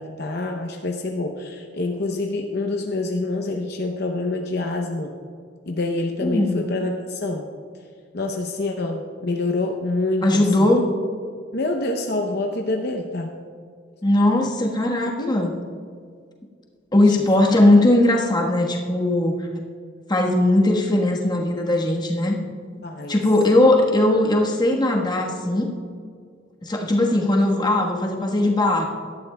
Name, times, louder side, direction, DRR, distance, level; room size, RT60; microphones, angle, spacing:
voice 1, 0.0-5.1 5.7-7.5 8.1-10.7 11.5-13.3 15.2-15.4 22.8-23.2, left 2 dB, 55° left, 3 dB, 0.7 m, -26 dB
voice 2, 6.2-6.6 10.2-10.9 14.0-15.5 16.9-19.4 20.1-22.4 23.1-25.7 26.6-28.8, left 1 dB, 20° left, 0 dB, 1.3 m, -19 dB
17.5 x 12.5 x 2.3 m, 2.1 s
head